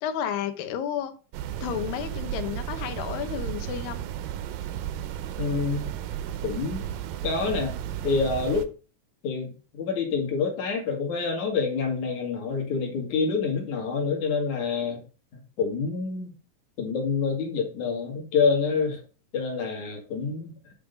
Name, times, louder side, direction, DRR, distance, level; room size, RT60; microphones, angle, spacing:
voice 1, 0.0-1.1 1.6-4.0, left 9 dB, 90° left, 9 dB, 2.6 m, -31 dB
sound 1, 1.3-8.7, right 11 dB, 85° right, 2.3 m, -34 dB
voice 2, 5.4-5.9 6.4-6.8 7.2-7.8 8.0-8.7 9.2-15.0 15.3-16.3 16.8-19.0 19.3-20.5, left 5 dB, 60° left, 1 dB, 3.0 m, -27 dB
9.3 x 3.6 x 5.1 m, 0.37 s
omnidirectional pair, 3.9 m